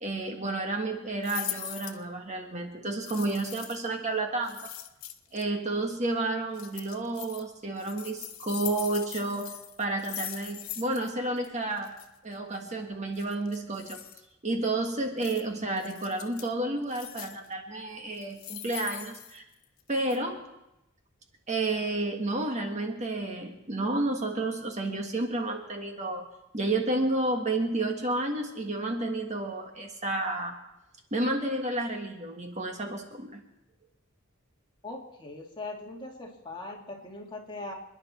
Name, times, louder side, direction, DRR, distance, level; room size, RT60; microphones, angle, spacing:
voice 1, 0.0-4.7 5.3-11.9 12.2-14.0 14.4-19.4 19.9-20.4 21.5-26.3 26.5-30.6 31.1-33.4, right 2 dB, 35° right, 3 dB, 1.6 m, -31 dB
sound 1, 1.2-2.0 3.0-3.9 4.4-5.4 6.5-7.4 7.8-11.1 11.4-11.5 11.8-12.1 13.2-14.2 15.2-15.4 15.8-16.5 16.9-17.5 18.1-19.8 20.1-20.2, left 13 dB, 85° left, 1.0 m, -41 dB
voice 2, 34.8-37.7, left 2 dB, 25° left, -1 dB, 2.4 m, -40 dB
29.0 x 10.5 x 4.4 m, 0.92 s
head